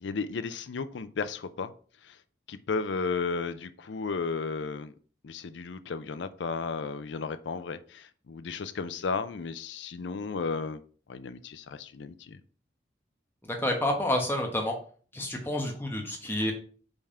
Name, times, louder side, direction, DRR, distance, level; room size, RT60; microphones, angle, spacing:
voice 1, 0.0-1.7 2.0-2.2 2.5-4.9 5.2-10.8 11.1-12.4, left 4 dB, 80° left, 11 dB, 0.5 m, -34 dB
voice 2, 13.4-14.7 15.1-16.5, left 1 dB, 10° left, 1 dB, 1.1 m, -29 dB
5.3 x 3.6 x 5.5 m, 0.43 s
head